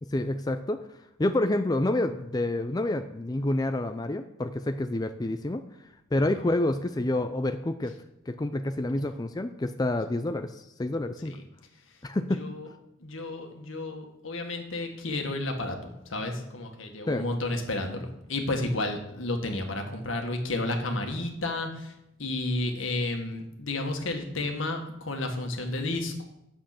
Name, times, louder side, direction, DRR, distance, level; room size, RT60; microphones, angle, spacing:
voice 1, 0.0-0.8 1.2-5.6 6.1-8.0 8.3-11.4 12.0-12.4 17.1-17.3, left 1 dB, 20° left, 8 dB, 0.4 m, -28 dB
voice 2, 12.3-12.7 13.0-21.9 22.2-26.2, left 2 dB, 80° left, 3 dB, 1.7 m, -32 dB
9.0 x 7.6 x 5.9 m, 0.84 s
head